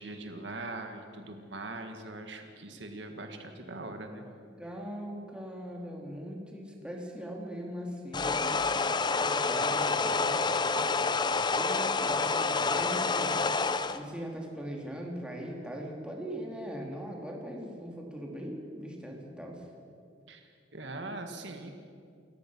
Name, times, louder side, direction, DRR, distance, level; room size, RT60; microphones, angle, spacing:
voice 1, 0.0-4.2 20.3-21.7, right 2 dB, 70° right, 5 dB, 1.8 m, -41 dB
voice 2, 4.1-8.5 9.1-10.4 11.5-13.4 13.9-19.6, equal, 5° right, -1 dB, 2.8 m, -40 dB
sound 1, 8.1-14.0, left 4 dB, 25° left, 0.6 m, -28 dB
29.0 x 14.5 x 6.2 m, 2.3 s
head